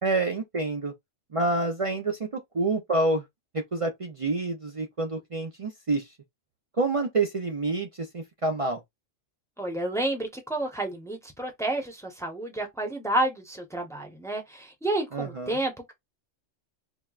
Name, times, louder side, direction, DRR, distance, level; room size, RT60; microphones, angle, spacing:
voice 1, 0.0-0.9 1.3-3.2 3.5-6.1 6.8-8.8 15.1-15.6, right 2 dB, 45° right, 0.4 m, -28 dB
voice 2, 9.6-15.9, right 1 dB, 5° left, 0.7 m, -30 dB
4.4 x 2.2 x 2.4 m
omnidirectional pair, 1.3 m